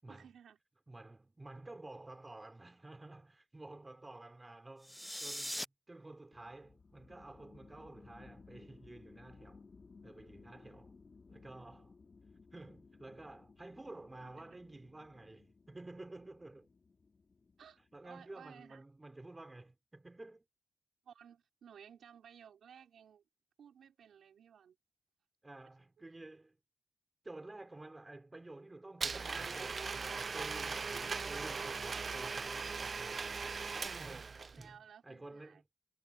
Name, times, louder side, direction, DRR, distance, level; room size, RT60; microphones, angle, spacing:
voice 1, 0.1-0.6 14.2-14.6 17.6-18.8 21.0-23.2 23.6-24.7 26.0-26.1 34.5-35.6, right 8 dB, 85° right, 4.8 m, -57 dB
voice 2, 0.9-9.6 10.0-10.9 11.3-11.9 12.5-16.7 17.9-20.4 25.4-26.6 27.2-33.3 34.0-35.6, right 2 dB, 20° right, 4.8 m, -52 dB
sound 1, 4.8-5.7, equal, ahead, 0.5 m, -40 dB
sound 2, 6.3-18.4, left 4 dB, 45° left, 3.3 m, -60 dB
Domestic sounds home sounds, 29.0-34.7, right 4 dB, 50° right, 0.6 m, -39 dB
cardioid pair, 75°, 0 cm